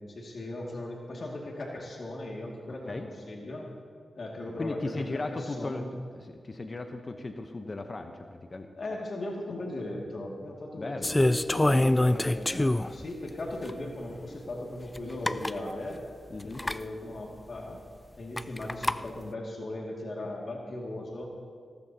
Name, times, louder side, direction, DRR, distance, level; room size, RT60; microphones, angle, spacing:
voice 1, 0.0-3.7 4.2-5.9 8.8-16.0 16.4-17.8 18.2-21.3, left 1 dB, 60° left, -1 dB, 2.3 m, -38 dB
voice 2, 4.6-8.7 10.8-11.2 16.3-16.6, left 2 dB, 45° left, 6 dB, 1.0 m, -37 dB
sound 1, 11.0-13.0 13.7-13.8 14.9-15.0 15.2-15.6 16.5-16.8 18.4-19.0, left 1 dB, 20° left, 0.4 m, -25 dB
19.0 x 17.5 x 2.9 m, 2.1 s
cardioid pair, 45°, 0 cm